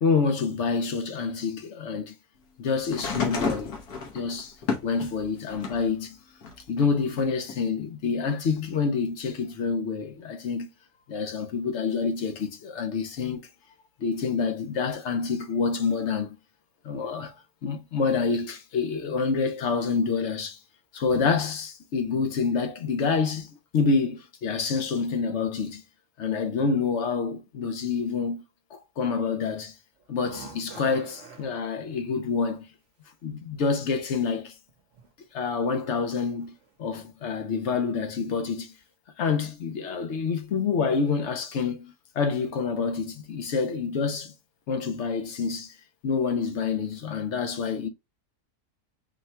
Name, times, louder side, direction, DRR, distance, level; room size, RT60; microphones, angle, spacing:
voice 1, 0.0-2.2 2.6-3.7 4.1-4.6 4.8-6.2 6.7-10.7 11.1-13.4 14.0-16.4 16.8-17.4 17.6-20.6 20.9-25.8 26.2-28.4 28.7-29.8 30.1-32.7 33.2-34.5 35.3-36.5 36.8-38.7 39.2-44.3 44.7-45.8 46.0-47.9, left 5 dB, 55° left, 0.8 m, -27 dB
sound 1, 2.9-5.9 6.4-7.6 8.6-8.7, left 5 dB, 80° left, 1.5 m, -32 dB
sound 2, 30.0-31.5 33.7-33.8 34.7-35.1 35.4-35.7 36.4-36.7 37.1-37.3 37.7-37.8, right 5 dB, 55° right, 1.1 m, -45 dB
4.4 x 2.3 x 4.3 m
omnidirectional pair, 1.7 m